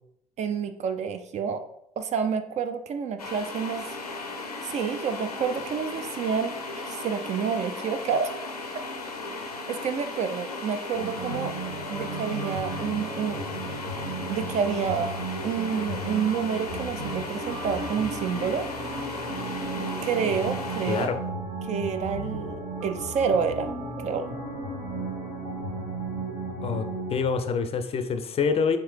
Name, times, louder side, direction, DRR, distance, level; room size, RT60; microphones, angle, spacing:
voice 1, 0.4-1.6 2.0-3.9 4.6-8.3 9.7-11.6 11.9-13.4 14.3-15.1 15.4-18.7 20.0-21.1 21.6-23.7 24.0-24.3, right 6 dB, 35° right, 9 dB, 0.4 m, -28 dB
sound 1, 3.2-21.1, left 3 dB, 85° left, 0.5 m, -36 dB
sound 2, 10.9-27.2, right 2 dB, 60° right, 1.3 m, -34 dB
voice 2, 20.9-21.2 26.6-28.8, left 5 dB, 30° left, 8 dB, 0.5 m, -26 dB
4.5 x 3.4 x 3.2 m, 0.80 s
figure-of-eight pair, 50°, 19 cm